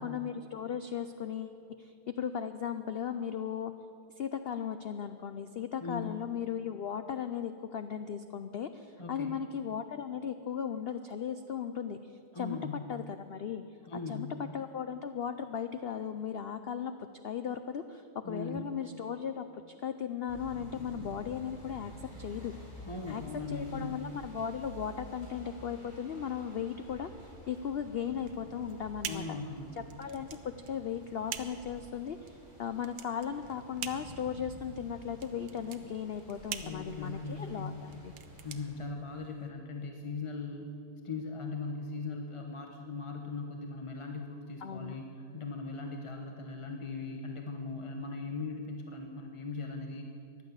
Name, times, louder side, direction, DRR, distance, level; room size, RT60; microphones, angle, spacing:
voice 1, 0.0-3.7 4.2-12.6 12.9-13.6 14.1-14.3 14.5-16.9 17.2-21.9 22.2-22.5 23.1-23.2 23.5-29.4 29.8-38.1 44.6-45.0, left 8 dB, 80° left, 9 dB, 0.5 m, -37 dB
voice 2, 5.8-6.1 9.0-9.4 12.3-12.7 13.9-14.3 18.2-18.7 22.9-24.0 29.0-29.8 36.6-37.7 38.4-40.7 41.0-50.1, left 3 dB, 25° left, 3 dB, 0.9 m, -39 dB
sound 1, 20.3-38.7, right 1 dB, 15° right, 3.7 m, -51 dB
sound 2, 28.2-39.5, right 9 dB, 80° right, 1.3 m, -45 dB
14.5 x 11.0 x 8.1 m, 2.5 s
omnidirectional pair, 1.7 m